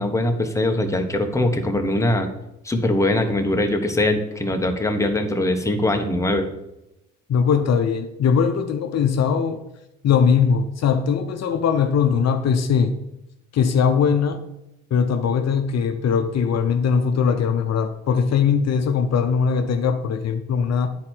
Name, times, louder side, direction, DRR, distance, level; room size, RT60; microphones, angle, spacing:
voice 1, 0.0-2.3 2.6-6.5, left 1 dB, 10° left, 4 dB, 1.0 m, -22 dB
voice 2, 7.3-9.6 10.0-13.0 13.5-14.4 14.9-20.9, left 6 dB, 60° left, 7 dB, 0.7 m, -20 dB
9.5 x 4.4 x 4.4 m, 0.90 s
cardioid pair, 90°, 30 cm